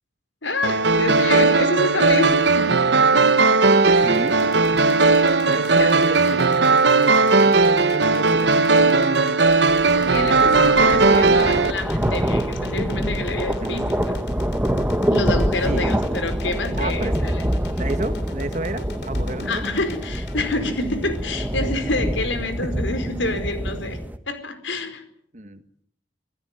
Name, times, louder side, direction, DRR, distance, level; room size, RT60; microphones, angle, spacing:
voice 1, 0.4-3.5 3.8-4.5 5.4-5.5 5.8-5.9 10.1-14.2 15.1-17.5 19.4-24.0 24.3-25.0, left 2 dB, 85° left, 9 dB, 4.8 m, -28 dB
sound 1, 0.6-11.7, right 3 dB, 65° right, 1.1 m, -17 dB
sound 2, 4.0-22.2, left 3 dB, 60° left, 3.2 m, -41 dB
voice 2, 4.0-4.4 4.7-4.8 5.5-9.4 10.0-11.6 13.6-13.9 15.6-15.9 16.8-17.1 17.8-19.7 25.3-25.6, right 1 dB, 40° right, 10 dB, 1.6 m, -31 dB
sound 3, 9.7-24.2, equal, 10° right, 1.3 m, -25 dB
26.5 x 15.5 x 9.7 m, 0.69 s
head